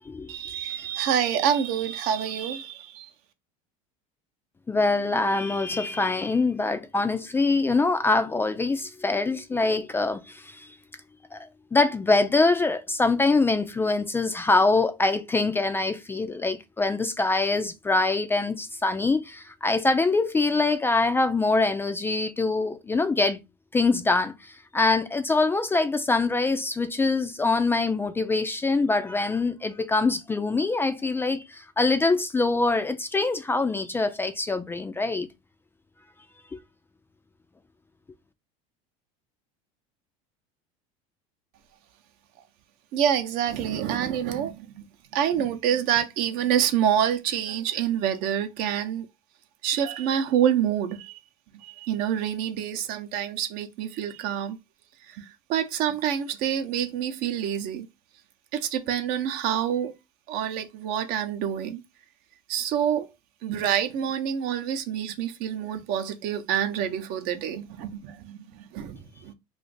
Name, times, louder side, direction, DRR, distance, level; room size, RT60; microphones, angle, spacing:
voice 1, 0.3-3.1 42.9-44.7 45.1-49.1 49.6-51.2 51.6-54.6 55.1-55.2 55.5-57.9 58.5-59.9 60.3-61.8 62.5-63.1 63.4-68.4 68.7-69.3, right 9 dB, 60° right, 0.7 m, -27 dB
voice 2, 4.7-10.7 11.3-11.4 11.7-23.4 23.7-24.3 24.7-35.3, left 3 dB, 15° left, 0.3 m, -24 dB
2.5 x 2.5 x 3.8 m
supercardioid pair, 110°, 17 cm